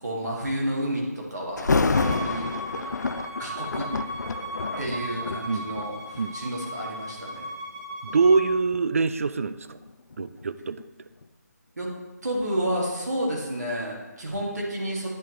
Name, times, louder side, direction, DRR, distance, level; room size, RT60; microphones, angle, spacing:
voice 1, 0.0-2.4 3.4-3.9 4.8-7.5 11.8-11.9 12.2-15.1, right 1 dB, 70° right, -3 dB, 1.8 m, -30 dB
Thunder, 1.6-6.5 7.2-7.4 8.1-10.9 11.2-11.3, left 4 dB, 80° left, 0.4 m, -29 dB
Bowed string instrument, 1.9-8.4, right 1 dB, 30° right, 1.8 m, -37 dB
voice 2, 8.1-9.8 10.2-10.8, right 4 dB, 50° right, 13 dB, 0.4 m, -24 dB
10.0 x 4.6 x 3.0 m, 1.2 s
figure-of-eight pair, 160°, 9 cm